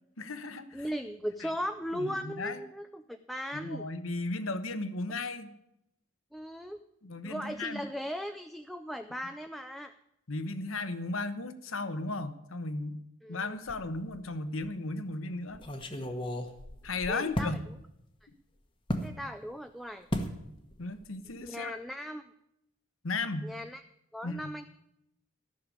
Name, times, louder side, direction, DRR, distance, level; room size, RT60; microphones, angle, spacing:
voice 1, 0.2-0.9 1.4-1.5 1.9-2.6 3.5-5.5 7.0-7.8 10.3-13.0 13.3-15.6 16.8-17.6 20.8-21.8 23.0-23.5 24.2-24.5, left 2 dB, 85° left, 11 dB, 1.1 m, -35 dB
voice 2, 0.7-3.9 6.3-6.8 7.2-9.9 13.2-13.5 17.1-17.6 19.0-20.1 21.4-22.2 23.4-23.8 24.1-24.6, equal, ahead, 7 dB, 0.4 m, -38 dB
sound 1, 13.7-14.3 14.6-14.7 15.5-17.6 18.9-19.1 20.1-20.4 20.7-21.0 21.3-21.5, equal, 25° left, 1.2 m, -35 dB
13.5 x 6.7 x 9.9 m, 0.82 s
head